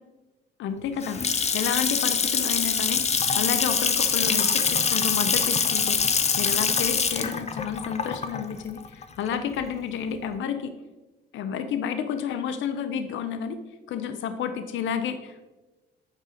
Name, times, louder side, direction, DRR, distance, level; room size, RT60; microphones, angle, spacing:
voice 1, 0.6-10.7 11.3-13.6 13.9-15.5, left 7 dB, 75° left, 9 dB, 0.6 m, -31 dB
Water tap faucet / Sink (filling or washing) / Splash splatter, 0.8-9.6, left 6 dB, 35° left, 0.6 m, -24 dB
8.4 x 4.8 x 3.8 m, 1.1 s
cardioid pair, 90°, 20 cm